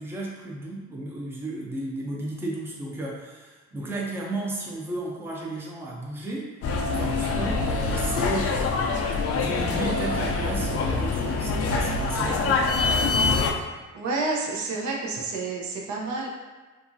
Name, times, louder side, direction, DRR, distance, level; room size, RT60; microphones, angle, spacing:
voice 1, 0.0-6.5 6.9-12.6, right 1 dB, 10° right, -3 dB, 0.5 m, -33 dB
sound 1, 6.6-13.5, left 4 dB, 50° left, 0.4 m, -25 dB
voice 2, 13.9-16.3, right 3 dB, 70° right, -2 dB, 0.7 m, -29 dB
2.9 x 2.4 x 2.6 m, 1.3 s
cardioid pair, 90°, 30 cm